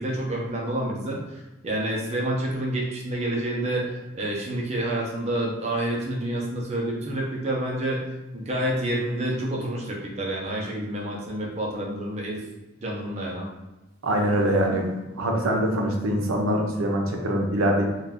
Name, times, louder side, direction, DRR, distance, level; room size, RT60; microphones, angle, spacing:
voice 1, 0.0-8.0 8.3-12.4 12.8-13.5, right 1 dB, 30° right, -2 dB, 0.5 m, -28 dB
voice 2, 14.0-17.9, right 1 dB, 85° right, 1 dB, 0.6 m, -24 dB
2.5 x 2.3 x 3.4 m, 1.0 s
head